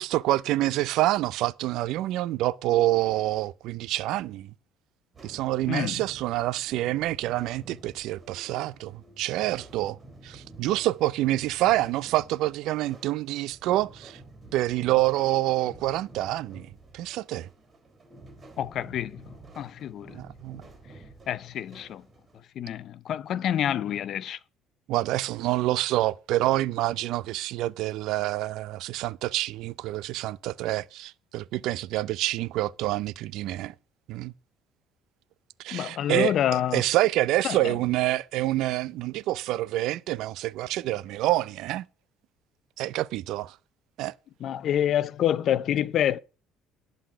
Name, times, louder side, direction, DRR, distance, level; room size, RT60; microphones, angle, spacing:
voice 1, 0.0-4.5 5.2-10.0 10.2-14.2 14.5-16.7 16.9-17.5 20.1-20.6 24.9-33.7 34.1-34.3 35.6-36.3 36.7-41.8 42.8-43.5 44.0-44.1, right 16 dB, 75° right, 0.4 m, -27 dB
sound 1, 5.1-22.4, right 2 dB, 30° right, 3.2 m, -50 dB
voice 2, 5.7-6.0 18.6-19.3 19.6-20.2 21.3-22.0 22.6-24.4 35.7-36.8 37.4-37.8 44.4-46.2, left 10 dB, 60° left, 0.6 m, -27 dB
11.5 x 4.1 x 8.0 m
supercardioid pair, 85°, 0 cm